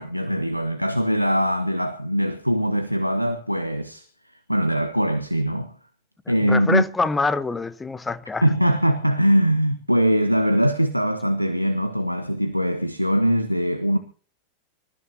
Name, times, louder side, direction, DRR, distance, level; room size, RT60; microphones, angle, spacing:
voice 1, 0.0-5.7 6.3-6.8 8.4-14.0, equal, 90° right, 1.1 m, -22 dB
voice 2, 6.4-8.4, left 3 dB, 10° left, 0.9 m, -25 dB
26.0 x 14.0 x 2.8 m
figure-of-eight pair, 90°, 0 cm